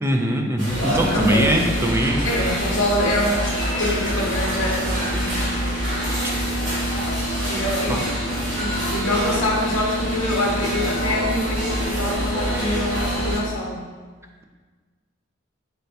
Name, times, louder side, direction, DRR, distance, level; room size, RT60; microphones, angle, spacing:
voice 1, 0.0-2.3 7.9-8.0, equal, 15° right, 2 dB, 0.3 m, -21 dB
sound 1, 0.6-13.4, equal, 60° right, 1.4 m, -28 dB
sound 2, 0.7-13.4, right 1 dB, 40° right, 1.3 m, -28 dB
voice 2, 0.8-1.8 2.2-5.5 7.5-13.9, left 1 dB, 70° left, -4 dB, 0.7 m, -25 dB
4.2 x 3.3 x 2.7 m, 1.5 s
head